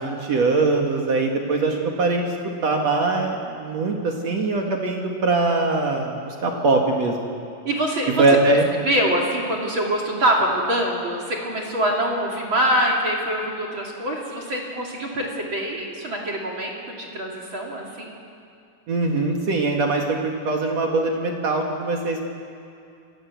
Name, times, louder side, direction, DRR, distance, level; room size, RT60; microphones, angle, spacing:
voice 1, 0.0-2.3 2.6-7.3 8.2-8.7 18.9-20.2 20.4-22.2, right 3 dB, 65° right, 1 dB, 1.7 m, -22 dB
voice 2, 7.6-8.2 8.8-18.1, right 1 dB, 35° right, -1 dB, 2.4 m, -24 dB
28.0 x 18.0 x 8.1 m, 2.5 s
omnidirectional pair, 5.7 m